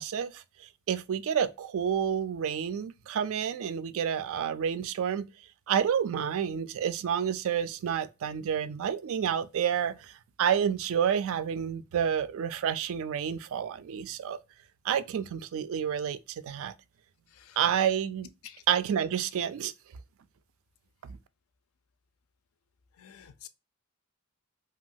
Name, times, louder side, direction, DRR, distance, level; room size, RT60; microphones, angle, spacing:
voice 1, 0.0-5.3 5.7-10.1 10.4-14.4 14.8-16.7 17.6-18.3 18.7-19.7, right 8 dB, 65° right, 0.3 m, -29 dB
voice 2, 23.0-23.5, left 10 dB, 70° left, 0.4 m, -49 dB
3.0 x 2.3 x 2.6 m
head